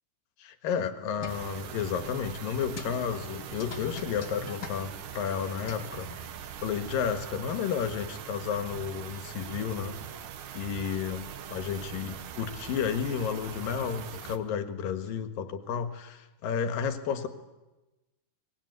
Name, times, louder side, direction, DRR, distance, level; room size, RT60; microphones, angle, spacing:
voice 1, 0.4-6.1 6.6-10.0 10.5-17.3, left 7 dB, 65° left, 8 dB, 2.8 m, -32 dB
sound 1, 1.2-6.3, left 7 dB, 45° left, 1.2 m, -45 dB
sound 2, 1.3-14.4, right 8 dB, 75° right, 1.7 m, -42 dB
24.5 x 20.0 x 9.6 m, 1.1 s
omnidirectional pair, 5.0 m